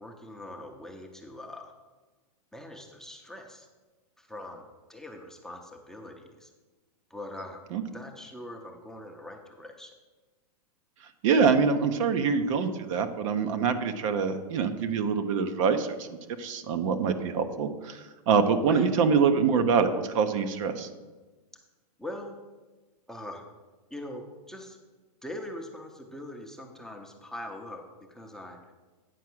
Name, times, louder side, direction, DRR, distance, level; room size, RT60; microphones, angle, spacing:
voice 1, 0.0-1.7 2.5-3.7 4.2-6.5 7.1-7.6 7.9-9.9 18.7-18.9 22.0-22.4 23.1-23.4 23.9-24.8 25.2-28.6, left 1 dB, ahead, 1 dB, 0.7 m, -42 dB
voice 2, 11.2-16.1 16.4-20.9, right 5 dB, 55° right, 8 dB, 0.9 m, -25 dB
9.3 x 4.6 x 6.1 m, 1.2 s
hypercardioid pair, 135°, 20 cm